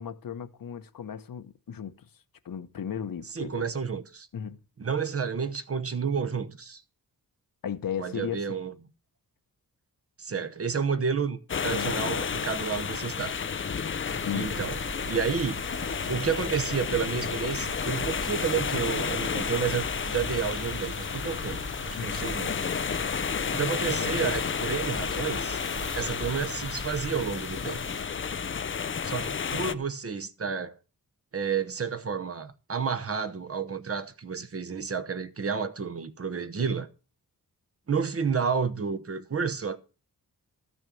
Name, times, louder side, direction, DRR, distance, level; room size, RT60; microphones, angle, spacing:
voice 1, 0.0-2.1 2.4-3.6 4.3-4.6 7.6-8.4 11.7-12.1 14.2-14.5 22.0-22.2, left 8 dB, 65° left, 1.0 m, -35 dB
voice 2, 3.3-4.3 4.8-6.8 8.0-8.7 10.2-13.4 14.3-14.8 15.1-15.6 16.1-22.6 23.5-25.6 26.0-27.8 29.0-30.8 31.3-36.9 37.9-39.8, right 6 dB, 40° right, 0.9 m, -30 dB
sound 1, 11.5-29.7, left 6 dB, 35° left, 0.5 m, -31 dB
sound 2, 14.0-28.0, right 3 dB, 60° right, 1.9 m, -42 dB
13.5 x 6.4 x 6.9 m
wide cardioid pair, 180°, 36 cm